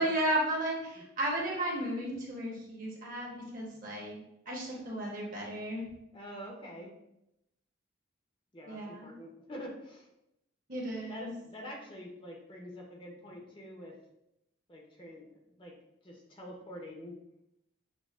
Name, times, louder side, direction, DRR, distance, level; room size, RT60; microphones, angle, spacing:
voice 1, 0.0-5.9 8.6-9.1 10.7-11.3, right 1 dB, 45° right, -2 dB, 0.9 m, -34 dB
voice 2, 6.1-6.9 8.5-10.1 11.1-13.9 14.7-15.3 15.6-15.7 16.0-17.2, equal, 25° left, -1 dB, 0.6 m, -46 dB
6.1 x 2.0 x 2.3 m, 0.83 s
head